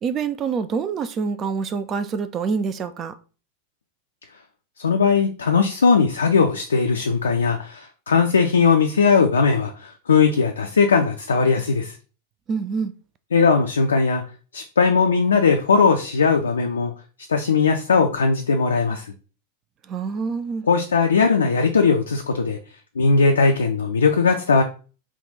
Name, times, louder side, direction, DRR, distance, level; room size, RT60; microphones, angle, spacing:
voice 1, 0.0-3.1 12.5-12.9 19.9-20.7, right 5 dB, 30° right, 0.4 m, -26 dB
voice 2, 4.8-12.0 13.3-14.2 14.5-16.9 17.3-19.1 20.7-22.6 23.0-24.6, left 5 dB, 70° left, 0.4 m, -19 dB
3.5 x 2.3 x 4.0 m
figure-of-eight pair, 90°, 0 cm